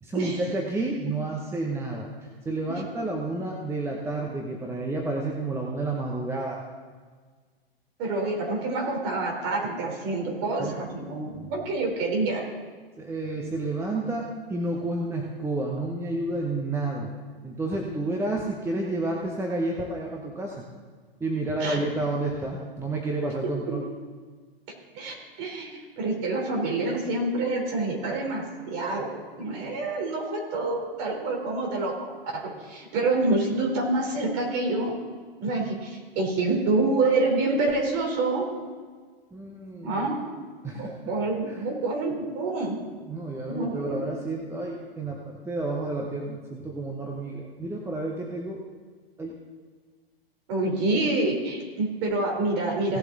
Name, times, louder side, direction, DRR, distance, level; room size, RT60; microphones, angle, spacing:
voice 1, 0.0-6.6 10.6-10.8 13.0-17.1 17.4-20.6 21.2-23.8 39.3-40.1 40.6-40.9 41.5-41.7 43.1-48.6 49.2-49.3, right 2 dB, 10° right, 0 dB, 1.0 m, -30 dB
voice 2, 8.0-12.5 21.6-21.9 23.7-23.8 24.9-34.9 35.4-38.5 39.8-40.2 40.7-42.8 43.5-44.0 50.5-53.0, right 2 dB, 40° right, 0 dB, 3.7 m, -27 dB
17.0 x 7.7 x 3.9 m, 1.5 s
figure-of-eight pair, 110°, 30 cm